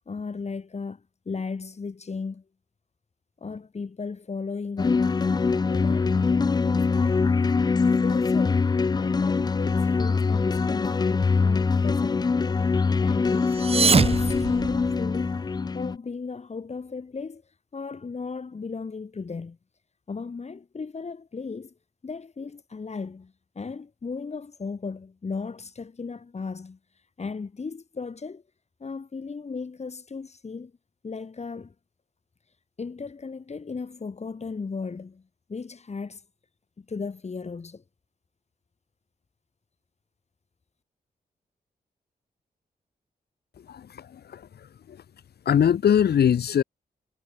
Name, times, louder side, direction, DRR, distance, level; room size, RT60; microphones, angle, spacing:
voice 1, 0.1-2.4 3.4-7.2 8.0-8.7 9.0-12.6 13.0-15.4 15.7-19.6 20.1-21.7 22.0-26.8 27.2-28.4 28.8-30.7 31.0-31.7 32.8-35.2 35.5-36.2 36.8-37.8, left 4 dB, 40° left, 3.3 m, -36 dB
sound 1, 4.8-16.0, left 4 dB, 25° left, 0.4 m, -23 dB
sound 2, 13.4-15.3, right 5 dB, 35° right, 0.6 m, -24 dB
voice 2, 43.7-44.4 44.9-45.0 45.4-46.6, left 9 dB, 80° left, 1.5 m, -22 dB
cardioid pair, 90°, 16 cm